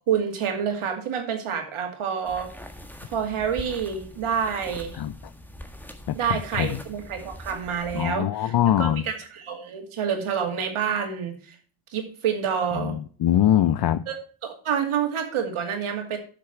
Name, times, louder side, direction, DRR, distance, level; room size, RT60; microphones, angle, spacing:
voice 1, 0.1-2.5 3.1-5.0 6.1-11.6 11.9-13.0 14.1-14.2 14.4-16.2, right 7 dB, 80° right, 2.5 m, -28 dB
sound 1, 2.2-8.0, left 1 dB, 5° left, 1.5 m, -43 dB
voice 2, 6.1-6.8 7.9-9.0 12.8-14.1, left 11 dB, 55° left, 0.5 m, -23 dB
7.9 x 6.8 x 5.9 m
cardioid pair, 85°, 50 cm